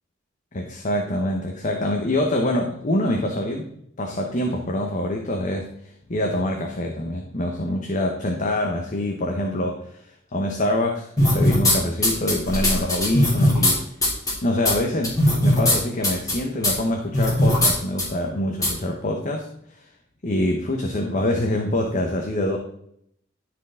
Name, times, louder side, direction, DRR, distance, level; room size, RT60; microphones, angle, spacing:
voice 1, 0.5-3.7 4.0-5.7 6.1-10.0 10.3-13.8 14.4-19.5 20.2-22.6, left 1 dB, 40° left, 2 dB, 1.0 m, -25 dB
sound 1, 11.2-11.7 12.0-13.7 14.0-14.3 14.6-14.7 15.0-15.8 16.0-16.3 16.6-16.7 17.1-17.7 18.0-18.1 18.6-18.7, left 1 dB, 20° left, 3.2 m, -18 dB
13.0 x 4.9 x 3.7 m, 0.71 s
head